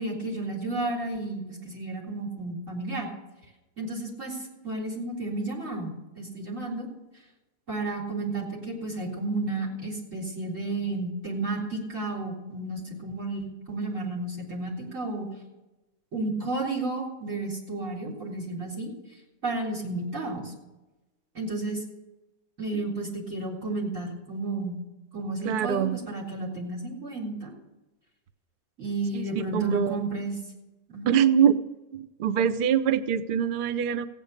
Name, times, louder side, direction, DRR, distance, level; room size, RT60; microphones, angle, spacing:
voice 1, 0.0-3.1 3.8-6.9 7.7-15.3 16.1-18.9 19.4-20.5 21.3-21.8 22.6-24.8 25.1-27.5 28.8-30.4 30.9-31.1, right 2 dB, 50° right, -1 dB, 4.2 m, -32 dB
voice 2, 25.4-26.0 29.1-29.3 29.5-30.0 31.1-31.6 31.9-34.1, right 8 dB, 70° right, 12 dB, 0.5 m, -24 dB
15.5 x 9.3 x 6.5 m, 1.1 s
omnidirectional pair, 1.7 m